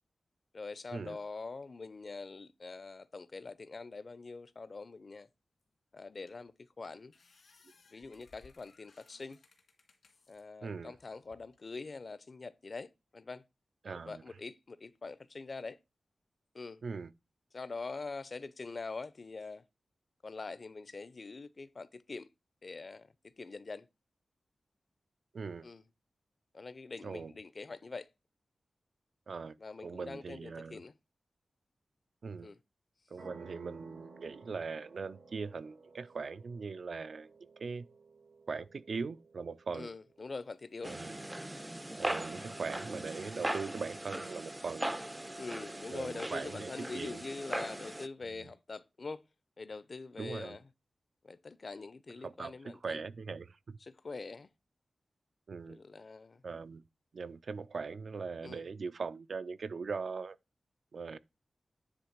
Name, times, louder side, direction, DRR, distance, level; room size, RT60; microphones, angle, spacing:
voice 1, 0.5-5.3 5.9-7.1 7.9-9.4 10.3-13.4 14.0-15.8 16.5-16.8 17.5-19.6 20.2-22.3 22.6-23.1 23.4-23.9 25.6-25.8 26.5-28.1 29.6-30.9 32.4-32.6 39.7-41.0 45.4-49.2 49.6-50.7 51.2-53.0 53.8-54.5 55.7-56.4 58.4-58.6, left 3 dB, 50° left, 0.6 m, -44 dB
sound 1, 5.6-5.7 6.3-6.5 6.8-10.4 11.0-11.6, left 4 dB, 80° left, 2.2 m, -64 dB
voice 2, 10.6-10.9 13.8-14.2 16.8-17.1 25.3-25.7 27.0-27.3 29.3-29.6 29.8-30.8 32.2-32.5 33.1-37.3 37.6-37.9 38.5-39.9 40.8-41.2 42.0-44.9 45.9-47.2 48.3-48.5 50.2-50.6 52.2-52.5 52.8-53.8 55.5-55.8 56.4-56.8 57.1-60.4 60.9-61.2, right 4 dB, 70° right, 0.5 m, -40 dB
sound 2, 33.2-40.4, right 3 dB, 90° right, 1.9 m, -56 dB
sound 3, 40.8-48.1, right 1 dB, 15° right, 0.4 m, -39 dB
9.8 x 3.4 x 5.9 m
wide cardioid pair, 85°, 0 cm